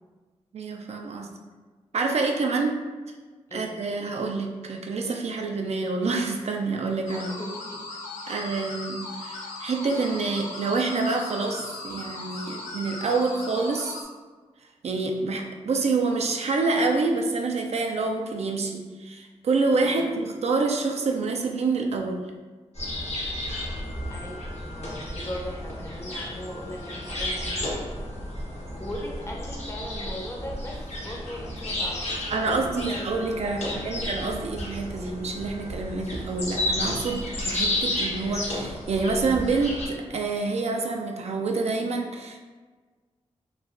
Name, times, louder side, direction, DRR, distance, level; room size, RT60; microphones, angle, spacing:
voice 1, 0.5-1.3 1.9-2.8 3.5-7.3 8.3-14.0 14.8-22.2 32.3-42.4, right 3 dB, 60° right, 2 dB, 0.4 m, -27 dB
sound 1, 7.1-14.0, left 2 dB, 80° left, 0.4 m, -38 dB
voice 2, 7.2-7.9 8.2-8.4 19.7-20.1 24.1-28.0 28.8-34.1 37.8-38.0, equal, 25° left, -1 dB, 0.6 m, -39 dB
sound 2, 22.7-39.9, left 1 dB, 65° left, 0.9 m, -32 dB
3.0 x 2.6 x 2.5 m, 1.4 s
cardioid pair, 45°, 12 cm